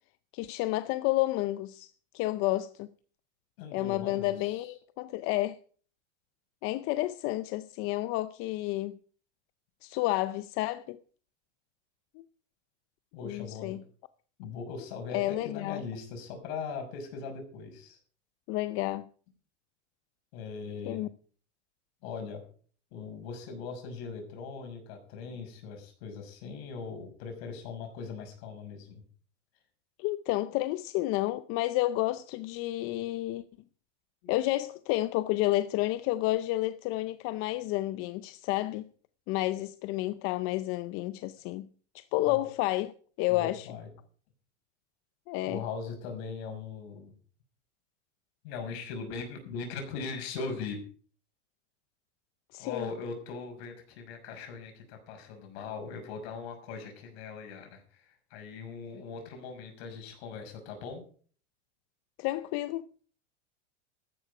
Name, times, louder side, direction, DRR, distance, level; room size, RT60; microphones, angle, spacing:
voice 1, 0.3-2.9 3.7-5.6 6.6-9.0 9.8-11.0 12.1-12.2 13.2-13.8 15.1-15.8 18.5-19.1 20.9-21.1 30.0-33.4 34.3-38.9 39.3-41.7 41.9-42.9 43.2-43.7 45.3-45.6 52.5-52.9 62.2-62.9, left 17 dB, 35° left, 0.6 m, -30 dB
voice 2, 3.6-4.7 13.1-13.8 14.4-18.0 20.3-21.0 22.0-22.4 22.9-29.0 34.2-34.3 42.2-42.4 43.3-43.9 45.4-47.1 48.4-50.8 52.6-61.0, left 5 dB, 55° left, 6.0 m, -40 dB
14.0 x 12.0 x 4.9 m
supercardioid pair, 145°, 36 cm